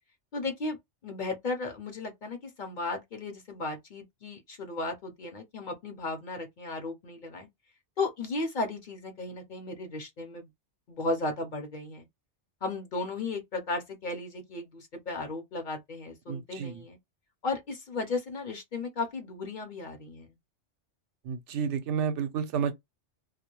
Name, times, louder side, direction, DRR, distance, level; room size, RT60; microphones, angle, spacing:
voice 1, 0.3-0.8 1.0-7.5 8.0-10.5 10.9-12.0 12.6-17.0 17.4-20.3, left 3 dB, 50° left, 0.7 m, -35 dB
voice 2, 16.3-16.7 21.3-22.7, right 7 dB, 85° right, 0.9 m, -30 dB
2.3 x 2.1 x 2.9 m
omnidirectional pair, 1.2 m